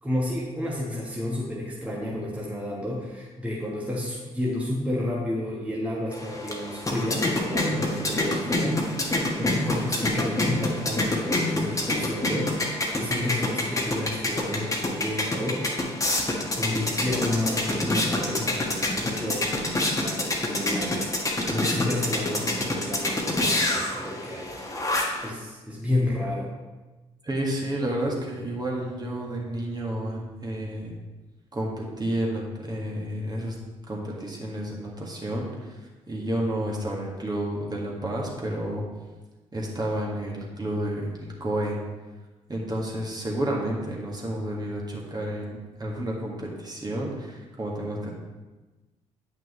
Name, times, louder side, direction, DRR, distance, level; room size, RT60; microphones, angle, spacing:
voice 1, 0.0-12.5 12.9-15.6 16.6-19.7 20.0-24.5 25.2-26.5, left 1 dB, 10° right, -5 dB, 1.5 m, -31 dB
sound 1, 6.1-25.3, left 1 dB, 20° left, 1.3 m, -27 dB
voice 2, 27.2-30.9 31.5-33.6 33.9-35.8 36.1-38.8 39.5-41.8 42.5-48.1, right 1 dB, 25° right, -2 dB, 1.8 m, -30 dB
9.2 x 5.8 x 3.2 m, 1.2 s
figure-of-eight pair, 45°, 16 cm